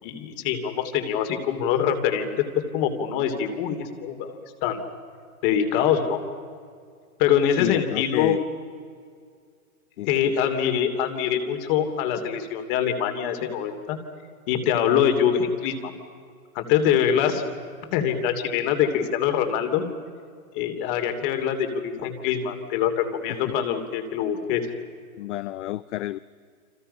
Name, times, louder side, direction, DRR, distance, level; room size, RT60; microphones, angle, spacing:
voice 1, 0.0-2.5 2.7-4.8 5.4-6.2 7.2-8.3 10.1-14.0 14.5-15.9 16.5-17.4 17.9-19.8 20.5-24.6, left 8 dB, 40° left, 7 dB, 3.0 m, -24 dB
voice 2, 7.6-8.4 10.0-10.3 23.4-23.5 25.2-26.2, left 15 dB, 55° left, 16 dB, 0.7 m, -30 dB
30.0 x 25.5 x 5.6 m, 2.1 s
hypercardioid pair, 145°, 43 cm